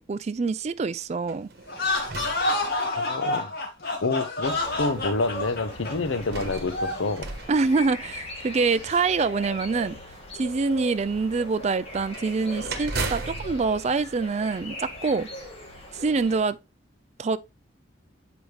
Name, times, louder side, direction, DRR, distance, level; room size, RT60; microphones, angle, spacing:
voice 1, 0.0-1.5 7.5-10.0 10.3-15.3 15.9-16.6 17.2-17.4, right 4 dB, 35° right, 0.4 m, -25 dB
sound 1, 1.2-3.2 4.0-4.1 5.9-8.5 11.9-15.0, right 3 dB, 55° right, 1.2 m, -37 dB
sound 2, 1.7-7.1, left 2 dB, 50° left, 1.9 m, -28 dB
voice 2, 3.0-3.5 4.0-7.3, left 3 dB, 85° left, 0.8 m, -28 dB
sound 3, 4.4-16.4, left 1 dB, 30° left, 2.0 m, -41 dB
7.9 x 5.0 x 3.3 m
head